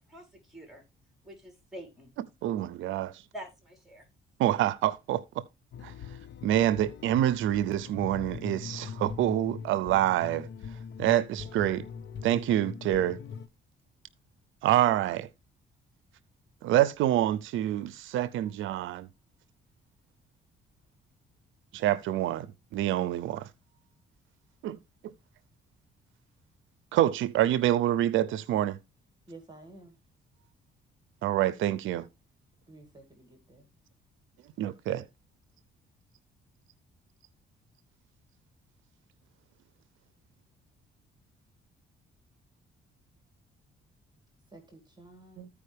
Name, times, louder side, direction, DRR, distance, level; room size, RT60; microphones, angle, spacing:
voice 1, 0.1-0.8 1.2-2.1 3.3-4.1, equal, ahead, 4.6 m, -46 dB
voice 2, 2.4-3.2 4.4-5.4 5.8-6.2 6.4-11.8 12.2-13.2 14.6-15.3 16.6-19.1 21.7-22.5 22.7-23.5 24.6-24.8 25.0-25.1 26.9-28.8 31.2-32.1 34.6-35.1 45.4-45.5, right 12 dB, 80° right, 0.5 m, -27 dB
sound 1, 5.7-13.5, left 6 dB, 60° left, 0.9 m, -42 dB
voice 3, 29.3-29.9 32.7-33.6 44.5-45.5, right 2 dB, 20° right, 2.1 m, -51 dB
14.5 x 4.9 x 3.3 m
cardioid pair, 90°, 20 cm